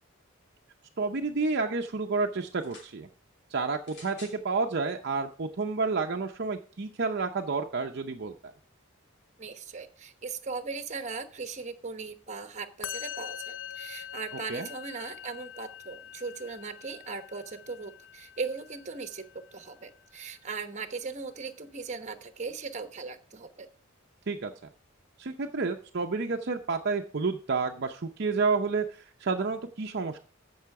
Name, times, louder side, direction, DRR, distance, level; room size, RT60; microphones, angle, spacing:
voice 1, 1.0-3.1 3.5-8.5 14.5-14.7 24.3-24.5 25.2-30.2, right 4 dB, 55° right, 4 dB, 0.7 m, -30 dB
sound 1, 2.5-3.0 3.8-4.4 5.3-5.4, left 3 dB, 60° left, 3.1 m, -50 dB
voice 2, 9.4-23.7, right 4 dB, 35° right, 9 dB, 1.1 m, -38 dB
Musical instrument, 12.8-20.1, left 10 dB, 80° left, 0.5 m, -44 dB
14.5 x 5.6 x 4.7 m, 0.42 s
head